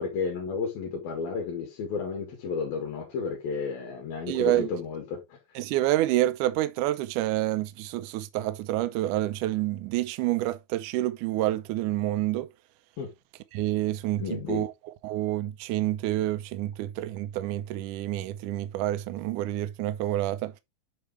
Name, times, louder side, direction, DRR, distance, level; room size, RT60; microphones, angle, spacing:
voice 1, 0.0-5.4 13.0-13.1 14.2-14.7, left 5 dB, 80° left, 3.6 m, -32 dB
voice 2, 4.3-4.7 5.6-12.5 13.5-14.7 15.0-20.6, right 14 dB, 90° right, 1.8 m, -28 dB
8.6 x 4.7 x 3.1 m
omnidirectional pair, 4.3 m